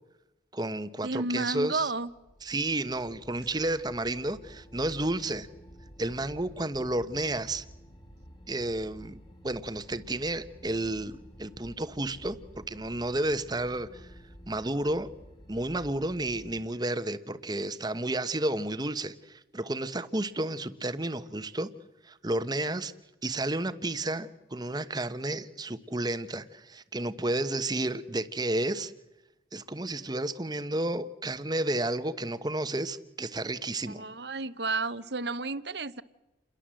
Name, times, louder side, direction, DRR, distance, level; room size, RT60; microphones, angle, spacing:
voice 1, 0.5-1.9 2.4-5.5 6.0-7.6 8.5-14.1 14.5-15.1 15.5-21.7 22.0-22.9 23.2-28.9 29.5-34.0, right 1 dB, 20° right, 12 dB, 1.1 m, -31 dB
voice 2, 1.0-2.1 33.9-36.0, right 3 dB, 60° right, 15 dB, 1.0 m, -32 dB
sound 1, 2.0-16.6, equal, 25° left, 2.3 m, -51 dB
29.0 x 22.0 x 7.7 m, 1.0 s
head